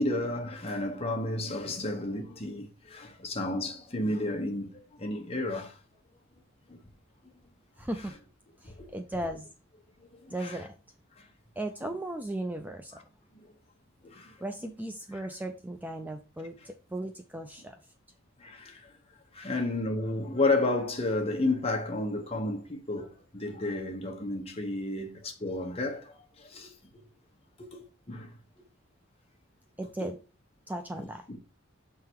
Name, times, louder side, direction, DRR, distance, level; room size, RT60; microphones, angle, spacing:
voice 1, 0.0-5.7 6.7-6.8 8.6-8.9 10.1-10.6 13.3-13.5 14.0-14.3 18.4-18.9 19.3-26.7 27.6-27.8 28.1-28.3 31.3-31.4, left 2 dB, 30° left, 1.1 m, -32 dB
voice 2, 7.8-8.2 8.6-9.5 10.3-10.7 11.6-13.0 14.4-17.8 29.8-30.2 30.7-31.4, right 1 dB, 10° right, 0.4 m, -36 dB
6.6 x 3.8 x 4.6 m
head